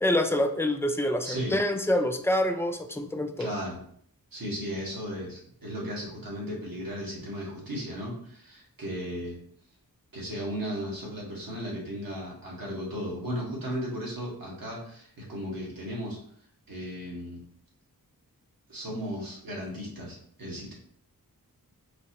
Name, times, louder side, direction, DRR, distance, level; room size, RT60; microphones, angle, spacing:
voice 1, 0.0-3.5, left 1 dB, 5° left, 6 dB, 0.4 m, -26 dB
voice 2, 1.2-1.6 3.4-3.8 4.3-9.4 10.1-16.2 16.7-17.4 18.7-20.7, equal, 65° right, -4 dB, 1.6 m, -35 dB
4.2 x 2.9 x 2.9 m, 0.64 s
wide cardioid pair, 60°, 37 cm